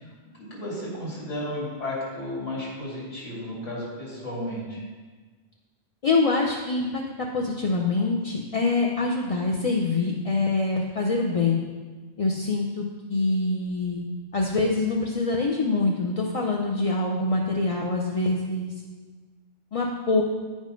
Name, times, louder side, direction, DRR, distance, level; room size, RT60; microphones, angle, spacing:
voice 1, 0.4-4.8, left 1 dB, 85° left, -6 dB, 3.1 m, -33 dB
voice 2, 6.0-11.6 12.2-14.0 14.3-18.7 19.7-20.2, left 3 dB, 40° left, -1 dB, 0.6 m, -25 dB
8.7 x 5.4 x 5.1 m, 1.4 s
omnidirectional pair, 1.2 m